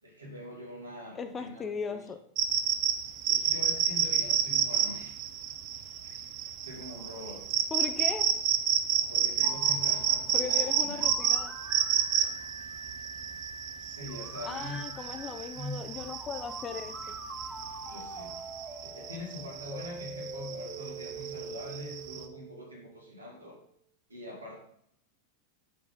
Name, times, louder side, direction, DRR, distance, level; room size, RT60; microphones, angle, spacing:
voice 1, 0.0-2.0 3.3-5.2 6.0-6.3 6.6-7.4 9.1-11.0 13.8-14.8 15.5-15.8 17.8-18.3 18.8-23.6 24.1-24.6, left 1 dB, 80° right, 2.3 m, -43 dB
voice 2, 1.1-2.2 7.7-8.4 10.3-11.5 14.4-17.2, left 5 dB, 20° left, 0.5 m, -38 dB
sound 1, 2.4-22.2, right 9 dB, 40° right, 0.7 m, -30 dB
sound 2, 9.4-23.3, right 3 dB, 10° right, 1.0 m, -44 dB
7.8 x 6.0 x 3.9 m
figure-of-eight pair, 90°, 0 cm